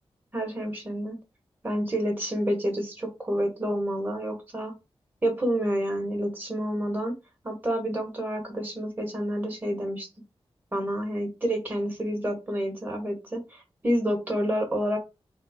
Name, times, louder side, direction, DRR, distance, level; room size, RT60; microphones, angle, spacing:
voice 1, 0.3-1.2 1.6-4.7 5.2-7.1 7.4-10.1 10.7-15.0, equal, 20° right, 2 dB, 1.4 m, -29 dB
3.8 x 2.0 x 3.6 m, 0.26 s
wide cardioid pair, 105°, 10 cm